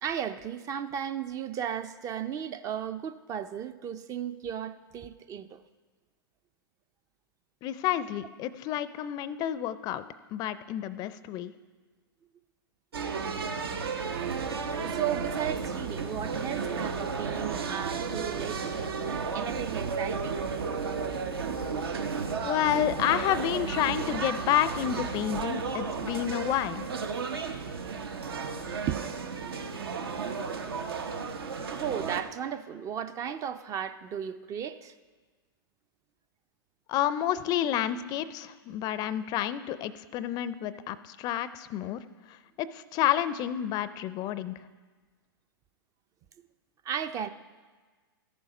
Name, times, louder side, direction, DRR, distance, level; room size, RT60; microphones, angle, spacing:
voice 1, 0.0-5.6 14.8-20.4 28.9-29.0 31.7-34.9 46.8-47.3, right 9 dB, 25° right, 0.4 m, -35 dB
voice 2, 7.6-10.0 10.3-11.5 22.4-26.9 36.9-42.0 42.3-44.6, left 11 dB, 30° left, 0.4 m, -30 dB
sound 1, 12.9-32.2, right 5 dB, 80° right, 1.0 m, -33 dB
13.5 x 7.0 x 4.9 m
hypercardioid pair, 115°, 13 cm